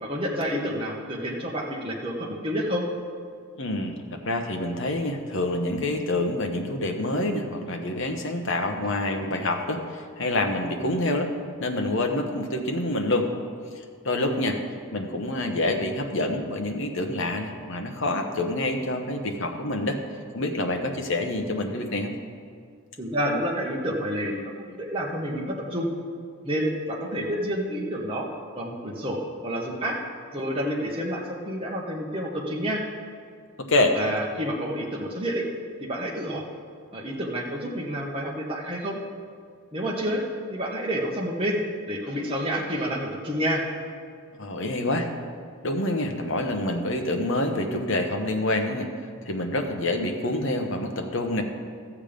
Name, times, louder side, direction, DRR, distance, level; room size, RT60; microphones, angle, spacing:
voice 1, 0.0-2.9 23.0-25.9 26.4-28.3 28.6-29.2 29.4-30.0 30.3-32.8 33.9-35.4 35.8-36.4 36.9-39.0 39.7-40.2 40.5-41.6 41.9-43.6, equal, 25° right, -3 dB, 1.2 m, -29 dB
voice 2, 3.5-4.0 4.2-11.3 11.6-13.3 13.7-14.6 14.9-20.0 20.3-22.1 33.7-34.0 44.4-45.1 45.6-48.9 49.2-51.4, left 1 dB, 55° left, 4 dB, 1.1 m, -27 dB
14.0 x 7.3 x 5.2 m, 2.1 s
head